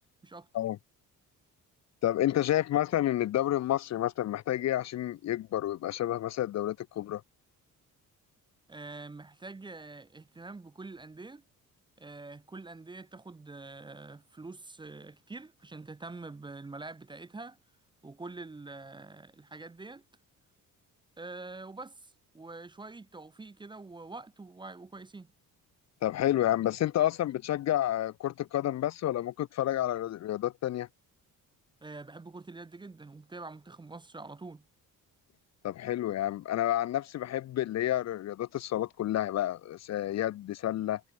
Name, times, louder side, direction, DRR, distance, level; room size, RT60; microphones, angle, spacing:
voice 1, 2.0-7.2 26.0-30.9 35.6-41.0, left 13 dB, 50° left, 0.6 m, -30 dB
voice 2, 8.7-11.4 12.0-17.6 18.0-20.0 21.2-25.3 31.8-34.7, right 3 dB, 15° right, 0.7 m, -45 dB
cardioid pair, 130°, 34 cm